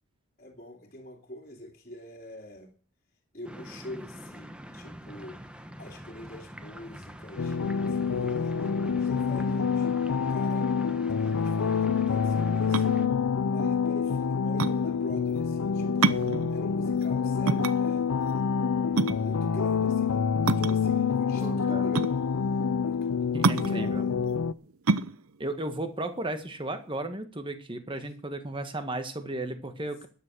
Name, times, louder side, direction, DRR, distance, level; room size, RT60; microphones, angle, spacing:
voice 1, 0.4-2.7 3.3-10.7 11.0-13.0 13.4-18.1 18.9-22.2 22.8-24.2 28.0-28.1, left 1 dB, 35° left, 2.5 m, -45 dB
sound 1, 3.4-13.1, equal, 5° right, 1.1 m, -45 dB
sound 2, 7.4-24.5, left 6 dB, 80° left, 0.6 m, -27 dB
sound 3, 12.5-26.9, right 4 dB, 75° right, 0.7 m, -30 dB
voice 2, 21.4-21.9 23.3-24.0 25.4-30.1, right 2 dB, 20° right, 1.7 m, -35 dB
14.0 x 10.0 x 6.3 m
head